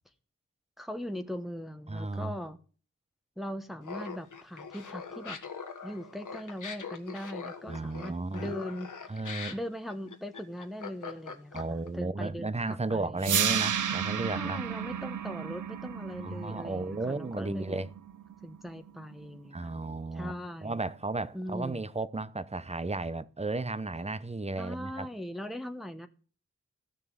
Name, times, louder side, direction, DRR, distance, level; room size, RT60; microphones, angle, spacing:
voice 1, 0.8-2.6 3.4-5.4 5.8-9.1 9.5-13.3 14.3-17.9 18.4-19.7 20.1-20.8 21.3-21.8 24.6-26.1, equal, ahead, 1.0 m, -40 dB
voice 2, 1.9-2.3 7.7-8.5 9.1-9.6 11.5-14.6 16.2-17.9 19.5-20.3 20.6-25.1, right 3 dB, 20° right, 0.7 m, -34 dB
Laughter, 3.8-11.9, left 5 dB, 90° left, 1.4 m, -42 dB
sound 1, 13.2-19.2, right 8 dB, 80° right, 0.6 m, -33 dB
14.5 x 6.6 x 7.6 m
wide cardioid pair, 75°, 30 cm